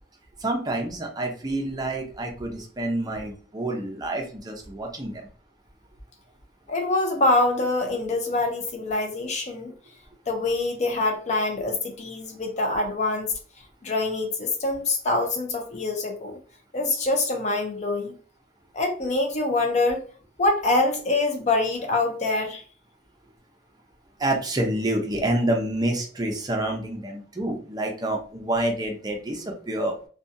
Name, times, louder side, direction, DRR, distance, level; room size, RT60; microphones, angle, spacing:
voice 1, 0.4-5.3 24.2-30.0, right 1 dB, 20° right, 2 dB, 0.5 m, -28 dB
voice 2, 6.7-9.7 10.3-13.3 13.8-16.4 16.7-18.2 18.7-20.0 20.4-22.6, left 2 dB, 40° left, 3 dB, 0.5 m, -25 dB
2.6 x 2.2 x 2.6 m, 0.41 s
head